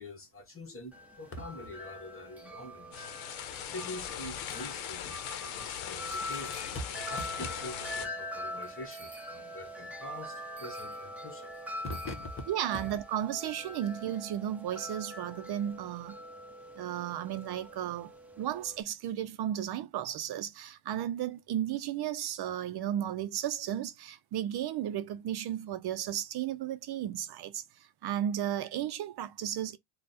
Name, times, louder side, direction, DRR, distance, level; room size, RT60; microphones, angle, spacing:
voice 1, 0.0-3.1 3.6-11.5 11.8-12.5, left 1 dB, 25° left, 1.3 m, -44 dB
Wind chime, 0.9-18.8, equal, 5° right, 0.8 m, -43 dB
sound 1, 2.9-8.1, left 10 dB, 90° left, 0.8 m, -39 dB
voice 2, 12.5-16.2 16.8-29.8, right 11 dB, 55° right, 0.6 m, -34 dB
3.3 x 2.3 x 4.1 m
cardioid pair, 105°, 47 cm